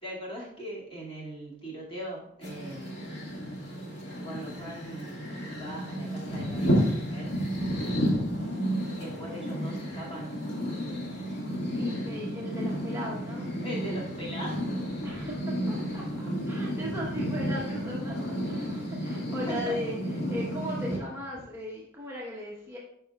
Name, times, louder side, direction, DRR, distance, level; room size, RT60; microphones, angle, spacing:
voice 1, 0.0-3.1 4.2-5.2 5.5-7.3 9.0-10.4 13.6-14.9 19.5-19.8, equal, 30° left, -5 dB, 2.3 m, -40 dB
sound 1, 2.4-21.0, equal, 60° left, 2.0 m, -32 dB
voice 2, 8.3-8.7 11.7-13.5 15.0-22.8, equal, 15° right, -5 dB, 1.1 m, -38 dB
12.5 x 5.4 x 2.4 m, 0.73 s
head